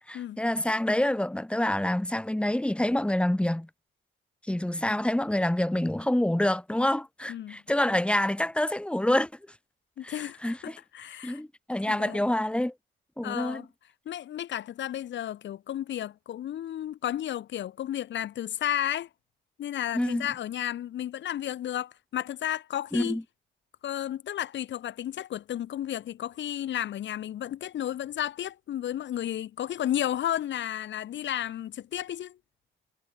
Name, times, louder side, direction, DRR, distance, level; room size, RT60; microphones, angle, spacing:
voice 1, 0.1-3.7 4.5-9.3 10.0-10.8 11.2-12.7 13.2-13.7 19.9-20.3 22.9-23.2, left 1 dB, 5° left, 2.8 m, -27 dB
voice 2, 7.3-7.6 10.0-11.4 11.9-12.2 13.2-13.7 14.0-19.1 19.6-23.2 23.8-32.4, left 11 dB, 65° left, 1.5 m, -33 dB
cardioid pair, 90°, 20 cm